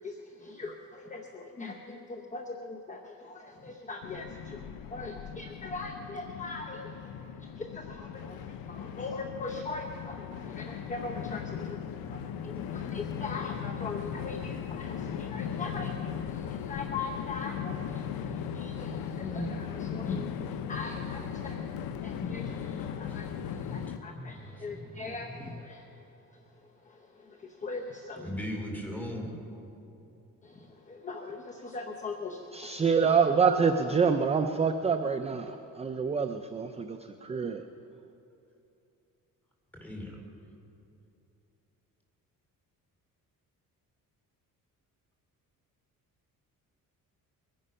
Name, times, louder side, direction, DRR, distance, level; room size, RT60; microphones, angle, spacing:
voice 1, 0.0-4.6 4.9-11.4 12.1-26.0 26.3-28.4 30.4-32.8 33.6-33.7 34.0-34.1, left 3 dB, 20° left, 3 dB, 0.8 m, -41 dB
Train, 4.0-24.0, left 8 dB, 90° left, 0.8 m, -38 dB
voice 2, 22.8-25.6 28.2-29.3 39.8-40.2, left 1 dB, 5° left, 0 dB, 2.8 m, -40 dB
voice 3, 32.5-37.7, right 5 dB, 20° right, 7 dB, 0.4 m, -26 dB
22.0 x 10.5 x 5.5 m, 2.8 s
cardioid pair, 145°, 35 cm